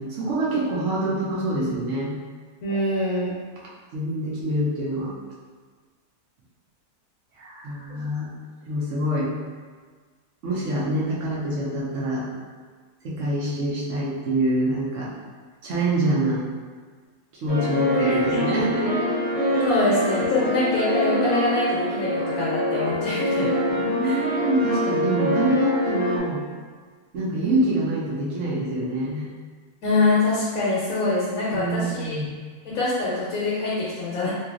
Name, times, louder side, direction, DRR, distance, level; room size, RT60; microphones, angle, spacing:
voice 1, 0.0-2.1 3.9-5.1 7.4-8.3 8.7-9.3 10.4-12.3 13.0-15.1 15.6-16.4 17.3-19.0 23.7-26.4 27.1-29.3 31.6-32.3, right 1 dB, 60° right, -6 dB, 0.9 m, -25 dB
voice 2, 2.6-3.3 7.9-8.0 18.0-18.6 19.6-23.5 24.0-24.2 29.8-32.2 32.6-34.3, left 2 dB, 70° left, -7 dB, 1.1 m, -24 dB
sound 1, 17.5-26.2, equal, 20° left, 0.7 m, -24 dB
2.9 x 2.8 x 2.4 m, 1.5 s
omnidirectional pair, 1.7 m